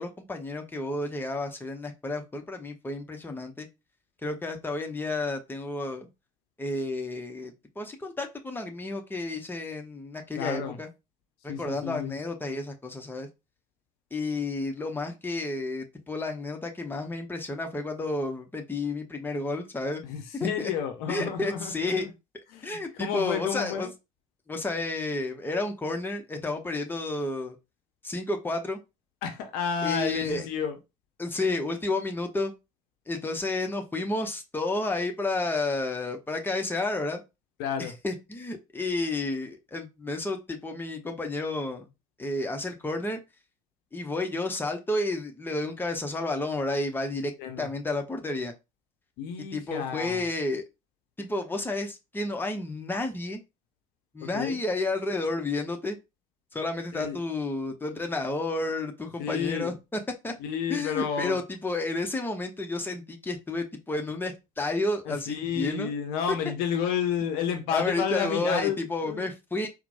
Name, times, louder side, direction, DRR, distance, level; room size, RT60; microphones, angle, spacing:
voice 1, 0.0-3.7 4.2-6.1 6.6-10.9 11.4-13.3 14.1-20.0 20.3-20.7 21.1-22.1 22.6-23.9 24.5-27.6 28.0-28.8 29.8-30.5 31.2-32.5 33.1-37.2 37.8-41.9 42.2-43.2 43.9-47.3 47.6-48.5 49.5-50.6 51.2-53.4 54.1-56.0 56.5-60.3 60.7-65.9 66.3-66.4 67.7-69.7, left 2 dB, 10° left, 0.8 m, -31 dB
voice 2, 10.4-10.8 11.5-12.1 20.1-22.1 22.5-23.9 29.2-30.7 37.6-37.9 47.4-47.7 49.2-50.2 54.2-54.6 56.9-57.2 59.2-59.7 60.4-61.4 65.1-69.3, left 7 dB, 60° left, 0.6 m, -31 dB
4.2 x 2.1 x 2.7 m
figure-of-eight pair, 55°, 18 cm